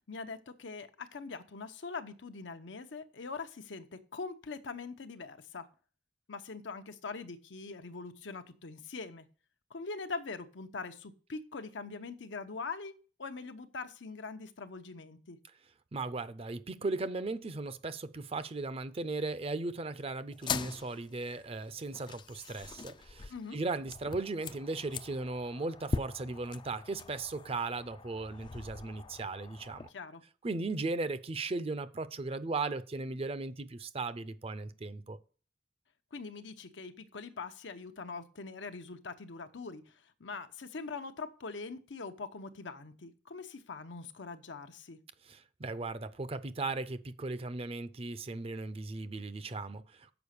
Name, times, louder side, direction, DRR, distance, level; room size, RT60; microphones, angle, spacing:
voice 1, 0.1-5.7 6.3-9.3 9.7-12.9 13.2-15.4 23.3-23.6 29.9-30.2 36.1-39.9 40.2-45.0, left 4 dB, 85° left, 0.8 m, -43 dB
voice 2, 15.9-29.9 30.4-35.2 45.3-50.1, right 3 dB, 35° right, 0.5 m, -37 dB
sound 1, 20.3-29.9, left 4 dB, 25° left, 0.3 m, -42 dB
7.0 x 5.1 x 6.4 m
head